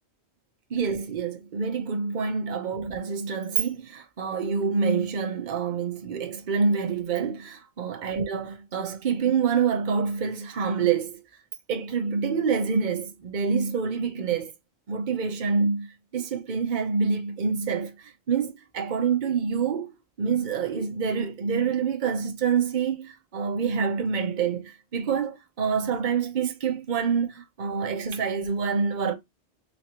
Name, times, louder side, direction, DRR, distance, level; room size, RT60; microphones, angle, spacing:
voice 1, 0.7-11.2 11.7-14.5 14.9-15.9 16.1-17.9 18.3-19.9 20.2-29.1, right 6 dB, 45° right, 0.9 m, -26 dB
4.0 x 2.9 x 2.9 m
omnidirectional pair, 1.2 m